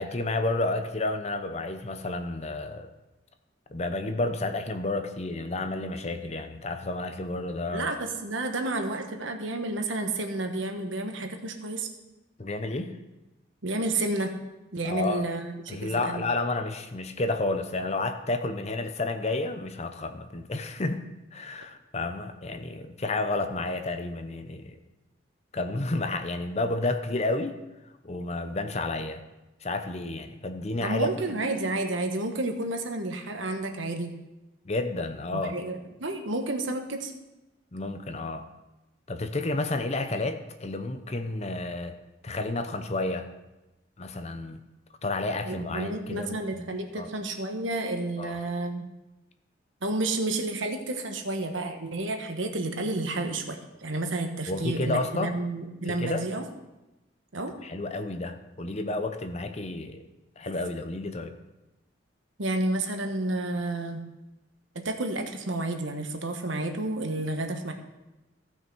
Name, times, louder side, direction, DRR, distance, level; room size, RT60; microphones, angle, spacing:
voice 1, 0.0-2.9 3.7-7.9 12.4-13.0 14.8-15.3 15.7-21.0 21.3-24.8 25.5-27.6 28.0-29.2 29.6-31.4 34.6-35.6 37.7-38.5 39.1-41.9 42.2-43.3 44.0-44.6 45.0-47.1 48.2-48.4 54.5-55.3 55.9-56.3 57.6-60.0 60.4-61.3, left 2 dB, 35° left, 8 dB, 0.7 m, -31 dB
voice 2, 7.7-11.9 13.6-14.3 14.7-16.3 30.8-34.1 35.3-37.1 45.4-48.9 49.8-56.5 57.3-57.5 62.4-64.0 64.7-67.7, right 2 dB, 85° right, 5 dB, 1.2 m, -31 dB
15.5 x 5.9 x 4.6 m, 1.0 s
head